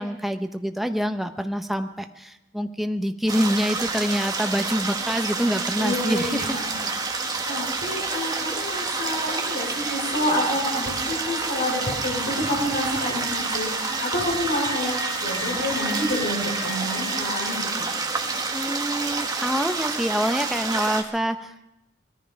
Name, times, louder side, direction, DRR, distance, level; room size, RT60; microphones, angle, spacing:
voice 1, 0.0-6.6 18.5-21.5, equal, ahead, 6 dB, 0.8 m, -26 dB
sound 1, 3.3-21.0, right 4 dB, 20° right, 1.5 m, -28 dB
voice 2, 5.8-7.0 7.5-13.7 14.0-17.9, left 1 dB, 65° left, -2 dB, 5.2 m, -28 dB
sound 2, 9.2-17.6, equal, 30° left, 4.4 m, -39 dB
20.5 x 13.5 x 5.1 m, 0.94 s
head